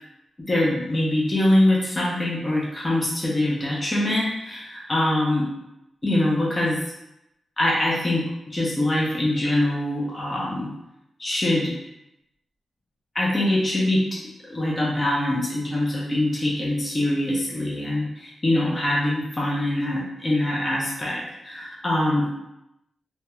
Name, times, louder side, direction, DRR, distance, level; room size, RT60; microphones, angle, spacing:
voice 1, 0.5-5.5 6.0-6.8 7.6-10.7 11.2-11.8 13.1-14.2 14.5-22.3, left 1 dB, 20° left, -5 dB, 0.4 m, -23 dB
3.0 x 2.0 x 2.2 m, 0.87 s
wide cardioid pair, 160°, 0 cm